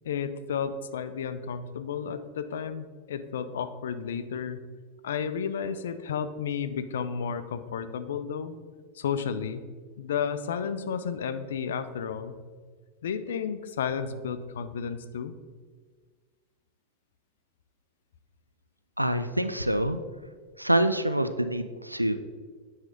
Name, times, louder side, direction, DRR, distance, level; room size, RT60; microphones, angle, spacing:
voice 1, 0.0-4.6 5.0-8.6 8.9-9.6 10.0-12.4 13.0-15.3, left 7 dB, 60° left, 11 dB, 0.5 m, -32 dB
voice 2, 19.0-20.0 20.6-22.2, right 1 dB, 90° right, 10 dB, 0.3 m, -26 dB
9.0 x 3.3 x 5.1 m, 1.5 s
figure-of-eight pair, 90°, 0 cm